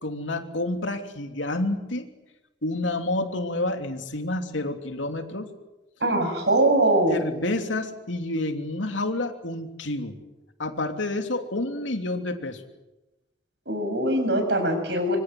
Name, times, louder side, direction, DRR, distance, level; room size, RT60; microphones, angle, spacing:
voice 1, 0.0-2.1 2.6-5.5 7.1-10.2 10.6-12.6, left 2 dB, 90° left, 5 dB, 3.2 m, -29 dB
voice 2, 6.0-7.2 13.7-15.2, right 1 dB, 65° right, 6 dB, 7.2 m, -22 dB
26.0 x 24.5 x 7.8 m, 1.0 s
head